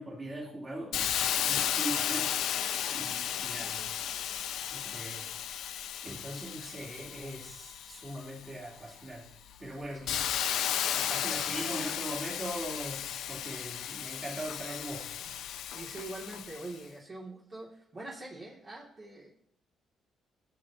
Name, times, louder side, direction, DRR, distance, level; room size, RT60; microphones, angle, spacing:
voice 1, 0.0-2.3 2.9-3.9 4.7-5.5 6.0-10.2 10.9-15.1, right 1 dB, 25° right, -5 dB, 3.4 m, -41 dB
Hiss, 0.9-8.5 9.0-16.7, left 10 dB, 80° left, 0.6 m, -34 dB
voice 2, 3.2-3.9 4.2-4.4 9.9-10.3 15.7-19.3, right 2 dB, 40° right, -5 dB, 2.7 m, -45 dB
15.0 x 7.7 x 3.0 m, 0.70 s
cardioid pair, 90°, 0 cm